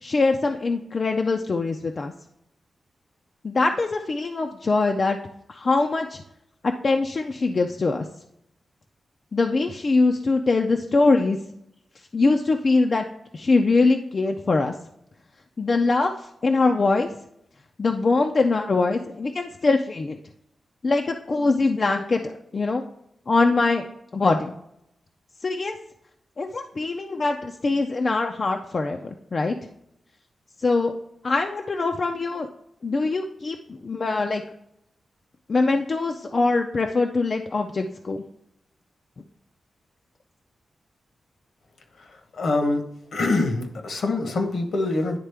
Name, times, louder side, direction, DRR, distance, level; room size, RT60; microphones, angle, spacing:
voice 1, 0.0-2.1 3.4-5.2 5.5-6.2 6.6-8.1 9.3-11.4 12.1-13.0 13.3-14.7 15.6-17.1 17.8-20.2 20.8-22.8 23.3-23.8 24.1-24.5 25.4-25.8 26.4-29.6 30.6-30.9 31.2-32.5 32.8-34.4 35.5-38.2, left 3 dB, 40° left, 4 dB, 0.4 m, -23 dB
voice 2, 42.4-42.8 43.1-45.2, left 2 dB, 60° left, 5 dB, 0.9 m, -24 dB
10.5 x 3.7 x 3.4 m, 0.76 s
wide cardioid pair, 150°, 0 cm